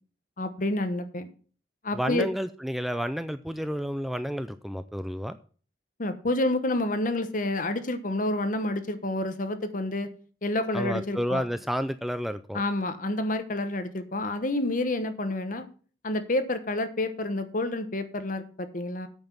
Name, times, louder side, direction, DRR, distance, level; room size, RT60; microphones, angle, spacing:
voice 1, 0.4-1.3 1.8-2.3 6.0-10.1 10.4-11.4 12.5-15.6 16.0-19.1, left 2 dB, 45° left, 10 dB, 1.0 m, -29 dB
voice 2, 1.9-5.4 10.7-12.6, equal, ahead, 11 dB, 0.3 m, -30 dB
8.7 x 5.9 x 7.3 m, 0.41 s
head